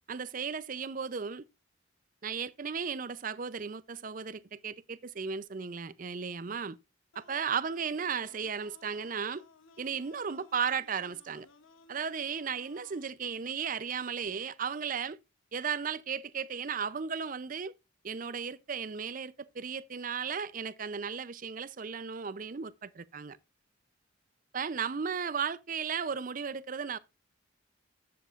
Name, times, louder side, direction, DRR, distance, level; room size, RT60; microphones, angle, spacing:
voice 1, 0.1-1.5 2.2-6.8 7.2-9.4 9.8-11.5 11.9-15.2 15.5-17.7 18.0-23.4 24.5-27.0, right 6 dB, 40° right, 0.5 m, -35 dB
sound 1, 7.1-13.1, left 3 dB, 85° left, 0.9 m, -59 dB
12.0 x 7.7 x 2.4 m
head